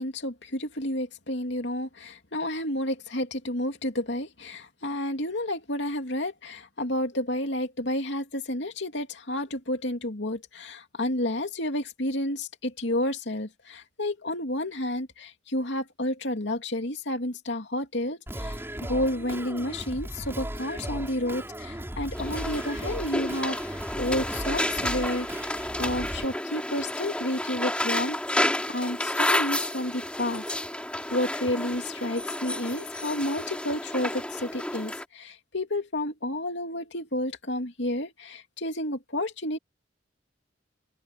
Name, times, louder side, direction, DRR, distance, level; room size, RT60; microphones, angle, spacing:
voice 1, 0.0-30.4 31.1-39.6, left 1 dB, 65° left, 2.9 m, -31 dB
Singing, 18.3-26.2, right 1 dB, 15° right, 6.3 m, -36 dB
sound 1, 22.1-35.0, left 1 dB, 5° left, 4.2 m, -31 dB
open air
head